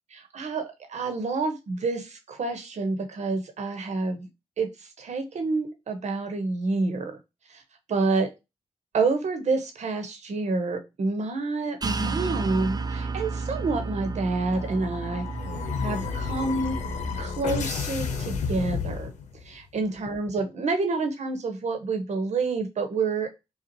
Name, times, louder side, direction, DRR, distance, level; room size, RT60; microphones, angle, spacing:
voice 1, 0.1-4.3 4.6-7.1 7.5-7.6 7.9-8.3 8.9-15.2 15.8-16.8 17.2-19.1 19.4-23.3, right 3 dB, 70° right, 6 dB, 1.1 m, -28 dB
sound 1, 11.8-17.2, right 4 dB, 35° right, 0.5 m, -32 dB
sound 2, 14.5-19.5, left 5 dB, 85° left, 0.7 m, -31 dB
5.2 x 2.4 x 2.8 m, 0.24 s
supercardioid pair, 45°, 12 cm